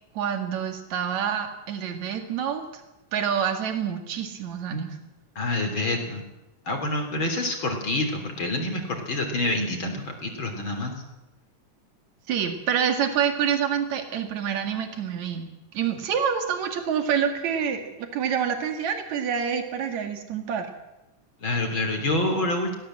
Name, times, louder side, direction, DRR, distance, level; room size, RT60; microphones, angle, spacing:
voice 1, 0.1-2.7 3.1-5.0 12.3-15.5 15.7-20.7, right 8 dB, 60° right, 6 dB, 3.4 m, -27 dB
voice 2, 5.4-6.2 6.7-10.9 21.4-22.7, left 2 dB, 40° left, 4 dB, 3.8 m, -27 dB
21.0 x 17.0 x 7.6 m, 0.96 s
omnidirectional pair, 3.7 m